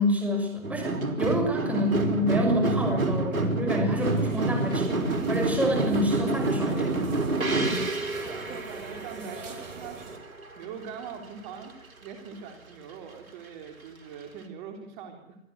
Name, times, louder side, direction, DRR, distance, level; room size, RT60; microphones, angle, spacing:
voice 1, 0.0-7.0, equal, 5° right, 1 dB, 6.1 m, -28 dB
sound 1, 0.6-10.6 10.9-11.7 12.1-12.2, right 2 dB, 85° right, 4.8 m, -28 dB
sound 2, 4.0-10.2, right 5 dB, 65° right, 5.7 m, -42 dB
voice 2, 7.3-10.0 10.6-11.7 12.0-15.4, right 7 dB, 35° right, 4 dB, 3.8 m, -43 dB
25.5 x 14.5 x 8.2 m, 0.79 s
hypercardioid pair, 140°, 40 cm